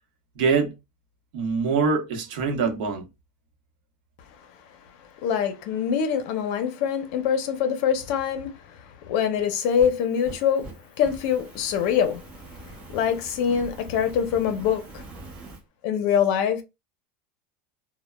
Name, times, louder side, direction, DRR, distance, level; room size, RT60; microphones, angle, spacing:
voice 1, 0.4-0.8 1.3-3.1, right 5 dB, 75° right, 0.8 m, -24 dB
voice 2, 5.2-12.2 12.9-15.0 15.8-16.6, left 8 dB, 60° left, 0.6 m, -24 dB
Fire, 9.5-15.6, right 2 dB, 25° right, 0.8 m, -44 dB
3.1 x 2.1 x 2.2 m
supercardioid pair, 155°, 5 cm